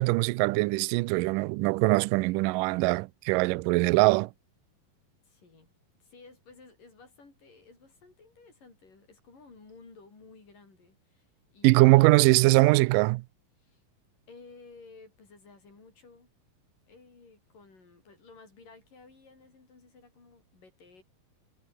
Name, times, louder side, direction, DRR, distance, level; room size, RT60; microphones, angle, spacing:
voice 1, 0.0-4.3 11.6-13.2, right 23 dB, 85° right, 1.9 m, -22 dB
voice 2, 5.2-5.7 6.0-12.3 13.6-13.8 14.3-16.3 16.9-21.0, left 4 dB, 60° left, 8.6 m, -54 dB
omnidirectional pair, 4.3 m